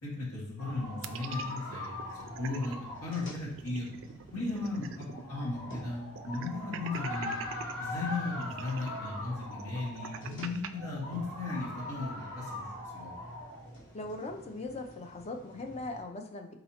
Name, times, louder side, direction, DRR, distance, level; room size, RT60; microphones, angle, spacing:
voice 1, 0.0-2.0 2.4-3.9 4.3-7.4 7.8-12.7 12.9-13.1, left 3 dB, 80° left, -6 dB, 1.8 m, -36 dB
sound 1, 0.6-16.0, left 1 dB, 60° left, 1.4 m, -42 dB
sound 2, 1.0-2.8 3.1-3.2 3.5-5.3 5.6-5.7 6.2-7.7 8.4-10.7, right 9 dB, 60° right, 0.3 m, -44 dB
voice 2, 13.9-16.5, left 2 dB, 30° left, 4 dB, 0.5 m, -40 dB
4.5 x 3.8 x 2.8 m, 0.74 s
head